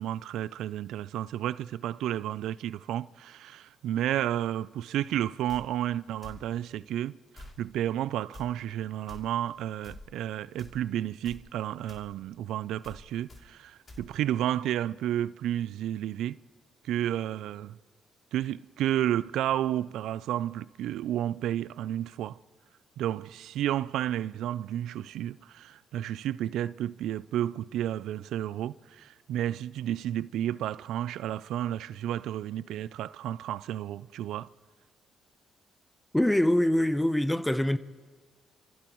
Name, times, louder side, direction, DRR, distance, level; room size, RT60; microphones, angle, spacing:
voice 1, 0.0-16.4 16.8-17.8 18.3-22.4 23.0-34.5, right 11 dB, 85° right, 0.3 m, -31 dB
sound 1, 5.5-5.6 6.2-6.4 7.3-7.6 8.3-8.5 9.1-9.2 9.8-10.0 10.6-10.8 11.2-11.4 11.9-12.1 12.8-13.0 13.3-13.4 13.9-14.0, left 2 dB, 35° left, 3.0 m, -46 dB
voice 2, 36.1-37.8, left 1 dB, 5° left, 0.7 m, -24 dB
28.0 x 15.0 x 3.1 m
cardioid pair, 90°, 0 cm